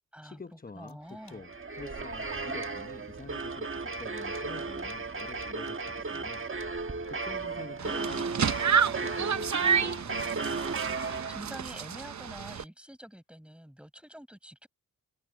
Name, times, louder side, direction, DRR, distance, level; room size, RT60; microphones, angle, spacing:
voice 1, 0.2-6.4 7.1-10.2, left 4 dB, 25° left, 1.0 m, -47 dB
voice 2, 0.7-1.4 11.3-14.7, equal, 5° right, 7.3 m, -46 dB
sound 1, 0.9-1.4 1.9-2.3 3.8-3.9 6.5-7.1 7.4-7.7 8.5-9.6 10.1-11.6 12.0-12.5 13.0-13.1, left 5 dB, 60° left, 6.0 m, -67 dB
sound 2, 1.2-11.7, right 4 dB, 35° right, 1.4 m, -35 dB
sound 3, 7.8-12.6, right 7 dB, 50° right, 0.8 m, -30 dB
cardioid pair, 65°, 36 cm